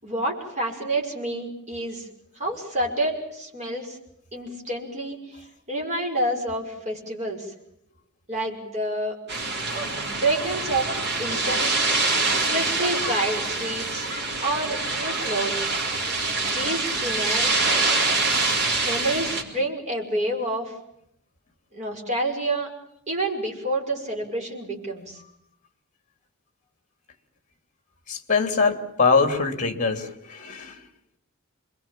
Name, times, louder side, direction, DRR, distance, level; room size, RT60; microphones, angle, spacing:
voice 1, 0.0-2.1 2.4-4.0 4.3-7.5 8.3-9.2 10.1-11.8 12.4-14.1 14.4-15.8 16.4-17.6 18.8-20.7 21.7-22.7 23.1-25.2, right 1 dB, 30° right, 0 dB, 5.9 m, -28 dB
sound 1, 9.3-19.4, right 3 dB, 50° right, 4.3 m, -25 dB
voice 2, 28.1-30.8, left 4 dB, 35° left, 7 dB, 2.7 m, -23 dB
27.5 x 22.0 x 7.5 m, 0.74 s
head